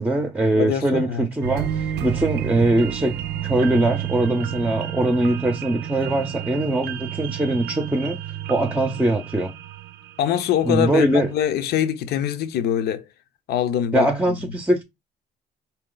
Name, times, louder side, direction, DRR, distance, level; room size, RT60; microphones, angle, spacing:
voice 1, 0.0-8.2 8.5-9.5 10.6-11.3 13.9-14.8, right 1 dB, 10° right, 0.6 m, -22 dB
voice 2, 0.5-1.3 10.2-13.0 13.5-14.4, left 10 dB, 70° left, 0.8 m, -23 dB
sound 1, 1.4-10.8 11.2-11.3, right 11 dB, 80° right, 0.5 m, -30 dB
4.2 x 2.9 x 3.8 m
cardioid pair, 110°, 17 cm